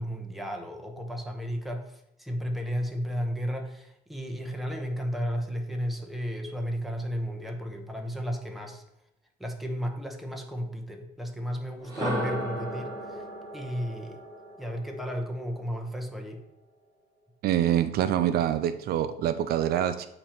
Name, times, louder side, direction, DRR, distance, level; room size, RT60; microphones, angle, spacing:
voice 1, 0.0-8.8 9.4-13.2 13.5-14.2 14.6-16.4, equal, ahead, 2 dB, 0.9 m, -33 dB
sound 1, 11.8-15.8, equal, 20° right, 2.1 m, -35 dB
voice 2, 17.4-20.1, right 11 dB, 65° right, 11 dB, 0.4 m, -25 dB
8.6 x 2.9 x 4.4 m, 0.82 s
cardioid pair, 110°, 17 cm